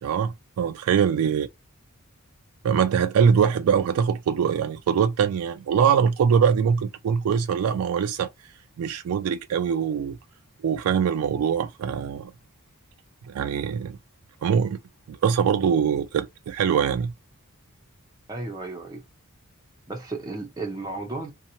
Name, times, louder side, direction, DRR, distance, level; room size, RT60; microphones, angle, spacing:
voice 1, 0.0-1.5 2.6-8.3 8.8-10.2 10.6-12.3 13.3-14.0 14.4-14.8 15.1-17.1, right 7 dB, 80° right, 0.3 m, -23 dB
voice 2, 18.3-19.0 19.9-21.3, right 2 dB, 15° right, 0.4 m, -34 dB
2.8 x 2.1 x 2.6 m
head